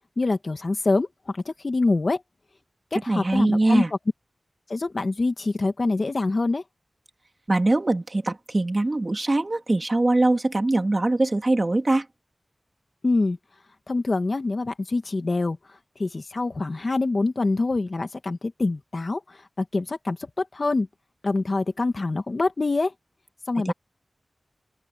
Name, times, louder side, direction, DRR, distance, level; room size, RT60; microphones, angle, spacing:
voice 1, 0.2-1.1 1.3-2.2 2.9-3.8 4.7-6.6 13.0-13.4 13.9-15.6 16.0-19.2 19.6-20.9 21.2-22.9 23.5-23.7, left 3 dB, 50° left, 2.1 m, -25 dB
voice 2, 3.1-3.9 7.5-12.1 23.7-23.8, right 2 dB, 35° right, 2.7 m, -22 dB
open air
wide cardioid pair, 85°, 0 cm